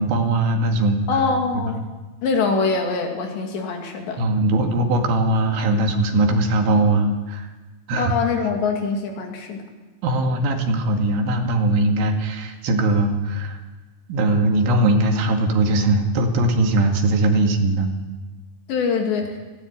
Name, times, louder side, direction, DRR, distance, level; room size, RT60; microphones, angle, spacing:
voice 1, 0.0-1.0 1.5-1.6 4.2-7.5 7.9-8.1 10.0-13.6 14.1-17.9, right 2 dB, 80° right, 3 dB, 4.5 m, -20 dB
voice 2, 1.1-1.8 2.2-4.2 8.0-9.6 18.7-19.4, left 4 dB, 70° left, 3 dB, 4.5 m, -23 dB
21.0 x 16.5 x 8.9 m, 1.2 s
omnidirectional pair, 5.4 m